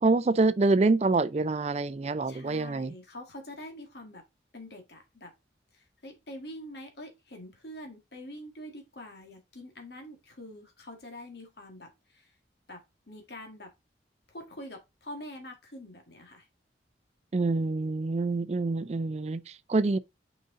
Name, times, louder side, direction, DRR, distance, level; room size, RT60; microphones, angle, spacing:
voice 1, 0.0-2.9 17.3-20.0, right 3 dB, 35° right, 0.4 m, -26 dB
voice 2, 2.3-4.2 4.5-5.3 5.7-12.3 12.7-13.7 14.3-16.5, left 1 dB, 65° left, 1.9 m, -45 dB
6.5 x 5.1 x 3.7 m
head